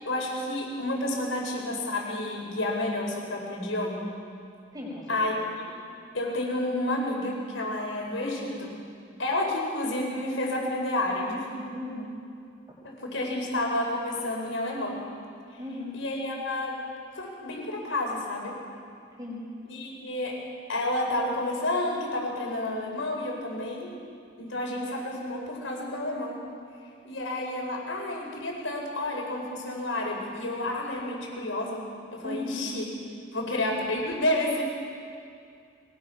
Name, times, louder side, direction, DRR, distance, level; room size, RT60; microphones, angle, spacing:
voice 1, 0.1-4.1 5.1-5.7 6.1-8.8 9.2-11.5 12.8-15.0 15.9-16.8 17.1-18.6 19.7-20.4 20.7-23.9 24.4-26.4 27.0-32.9 33.3-34.6, left 1 dB, 75° left, 0 dB, 4.8 m, -30 dB
voice 2, 4.7-5.4 11.7-12.1 15.6-15.9 19.2-19.4 32.2-32.6, left 2 dB, 20° right, -3 dB, 5.4 m, -36 dB
22.5 x 21.0 x 5.9 m, 2.4 s
head